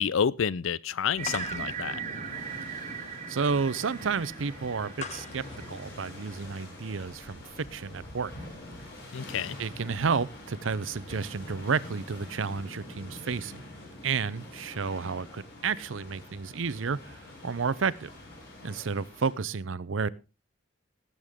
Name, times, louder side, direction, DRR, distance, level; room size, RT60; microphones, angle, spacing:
voice 1, 0.0-2.0 9.1-9.6, left 7 dB, 80° left, 0.5 m, -29 dB
sound 1, 1.2-19.3, left 1 dB, 55° left, 7.2 m, -45 dB
sound 2, 1.2-6.8, left 5 dB, 35° left, 1.1 m, -44 dB
sound 3, 1.2-6.4, right 7 dB, 40° right, 1.2 m, -39 dB
voice 2, 3.3-8.3 9.6-13.6 14.0-18.1 18.6-20.1, right 5 dB, 75° right, 0.6 m, -31 dB
19.0 x 8.0 x 3.6 m
head